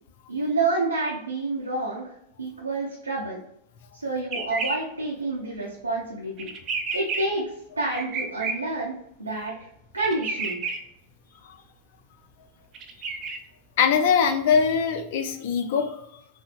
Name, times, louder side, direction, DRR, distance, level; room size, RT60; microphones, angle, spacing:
voice 1, 0.3-2.1 2.4-3.4 3.9-6.5 6.9-7.5 7.8-9.5 9.9-10.6, right 2 dB, 80° right, -4 dB, 0.6 m, -28 dB
sound 1, 4.3-4.8 6.4-7.2 7.9-8.5 10.0-10.8 12.7-13.4, right 4 dB, 30° right, 0.5 m, -30 dB
voice 2, 13.8-15.9, left 6 dB, 50° left, 7 dB, 0.4 m, -22 dB
5.0 x 2.0 x 2.4 m, 0.77 s
figure-of-eight pair, 90°, 0 cm